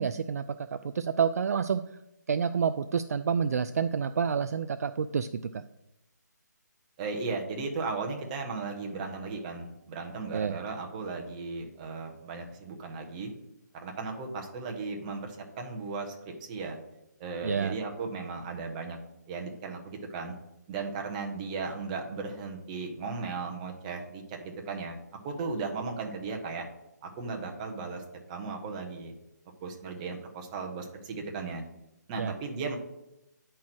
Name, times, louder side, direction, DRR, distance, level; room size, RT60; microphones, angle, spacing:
voice 1, 0.0-1.8 2.3-5.3 5.5-5.6 10.3-10.5 17.4-17.7 32.2-32.3, right 6 dB, 55° right, 10 dB, 0.4 m, -28 dB
voice 2, 7.0-13.3 13.8-16.8 17.2-19.0 19.3-20.4 20.7-25.0 25.2-26.7 27.0-28.0 28.3-29.1 29.6-31.6 32.1-32.8, right 4 dB, 25° right, 2 dB, 1.3 m, -36 dB
9.4 x 4.5 x 6.2 m, 0.90 s
figure-of-eight pair, 155°, 10 cm